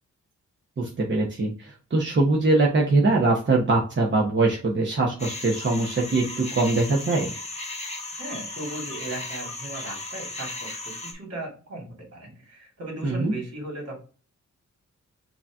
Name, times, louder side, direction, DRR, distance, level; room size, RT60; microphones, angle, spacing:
voice 1, 0.8-7.3 13.0-13.3, right 2 dB, 40° right, -2 dB, 1.0 m, -22 dB
sound 1, 5.2-11.1, left 2 dB, 20° left, 1.2 m, -36 dB
voice 2, 8.2-14.0, right 2 dB, 55° right, -1 dB, 2.5 m, -37 dB
5.2 x 2.8 x 3.5 m, 0.37 s
wide cardioid pair, 120°, 30 cm